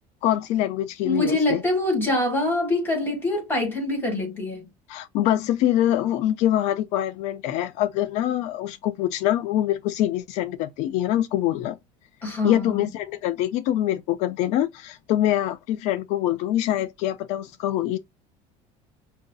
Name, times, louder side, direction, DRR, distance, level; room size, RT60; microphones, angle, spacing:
voice 1, 0.2-1.6 4.9-11.8 12.4-18.0, left 12 dB, 50° left, 0.4 m, -24 dB
voice 2, 1.0-4.7 12.2-12.8, left 2 dB, 15° left, 1.7 m, -24 dB
5.5 x 2.6 x 2.3 m
cardioid pair, 175°, 15 cm